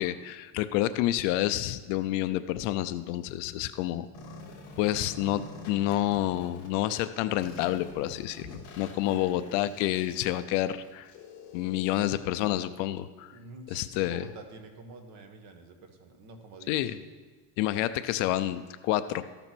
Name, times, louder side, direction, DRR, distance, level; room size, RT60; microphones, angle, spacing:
voice 1, 0.0-4.1 4.8-5.4 5.7-11.1 11.5-13.3 13.7-14.2 16.7-17.0 17.6-19.2, left 14 dB, 55° left, 12 dB, 0.5 m, -29 dB
sound 1, 4.1-6.7 7.4-12.1, left 3 dB, 40° left, 3.6 m, -47 dB
voice 2, 8.8-9.6 13.3-16.9, right 3 dB, 40° right, 6 dB, 1.3 m, -48 dB
13.5 x 6.9 x 6.1 m, 1.4 s
cardioid pair, 175°, 45 cm